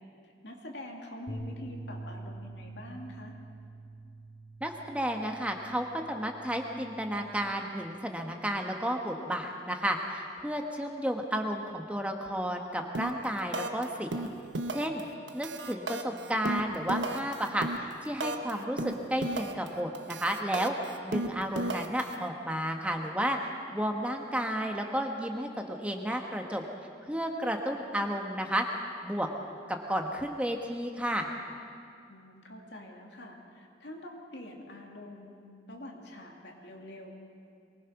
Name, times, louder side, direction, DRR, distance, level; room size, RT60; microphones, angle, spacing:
voice 1, 0.4-3.3 18.5-18.8 32.1-37.1, left 1 dB, 70° left, 1 dB, 2.7 m, -45 dB
sound 1, 1.3-7.5, right 2 dB, 30° left, 2.6 m, -46 dB
voice 2, 4.6-14.3 14.7-15.0 15.3-17.7 18.0-20.7 21.0-26.6 27.1-28.6 29.0-29.3 29.7-31.3, equal, 5° right, 3 dB, 1.2 m, -32 dB
sound 2, 12.9-13.2 13.5-13.8 14.1-15.0 15.3-18.5 18.8-19.7 19.9-22.1, right 2 dB, 80° right, 1.2 m, -34 dB
23.5 x 20.0 x 5.9 m, 2.4 s
head